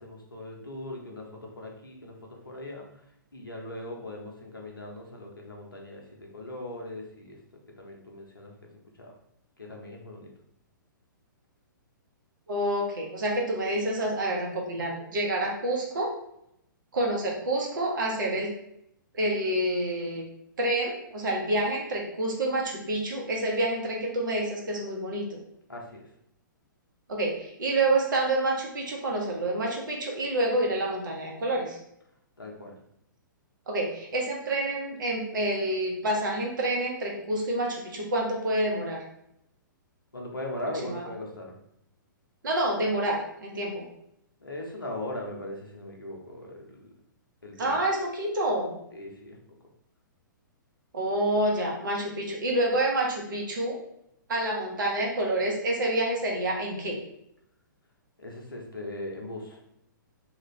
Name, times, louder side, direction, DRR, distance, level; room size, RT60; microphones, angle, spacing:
voice 1, 0.0-2.9 3.3-7.4 7.8-8.7 9.0-9.1 9.6-10.3 25.7-26.1 32.4-32.8 40.1-41.6 44.4-46.9 47.4-48.0 48.9-49.4 58.2-59.6, left 1 dB, 90° left, 0 dB, 0.9 m, -39 dB
voice 2, 12.5-16.1 16.9-18.5 19.1-20.2 20.6-25.3 27.1-31.8 33.7-39.0 40.8-41.1 42.4-43.9 47.6-48.7 50.9-53.7 54.3-57.0, right 1 dB, 65° right, -1 dB, 1.1 m, -28 dB
3.1 x 2.5 x 3.2 m, 0.77 s
figure-of-eight pair, 120°, 11 cm